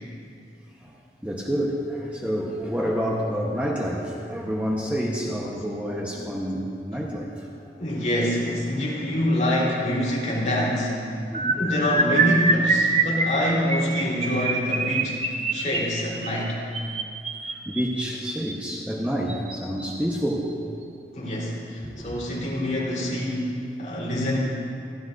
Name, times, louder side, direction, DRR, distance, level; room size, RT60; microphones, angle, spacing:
voice 1, 1.2-7.5 11.3-11.6 15.5-15.6 17.5-20.5 21.8-21.9, equal, 10° right, -3 dB, 1.1 m, -28 dB
voice 2, 7.8-11.0 11.5-15.2 15.5-16.6 21.1-24.4, left 1 dB, 40° left, -6 dB, 3.8 m, -25 dB
sound 1, 11.3-18.5 19.3-19.5 19.8-20.0 20.3-20.5, right 3 dB, 35° right, 0.9 m, -25 dB
28.5 x 13.0 x 2.7 m, 2.5 s
head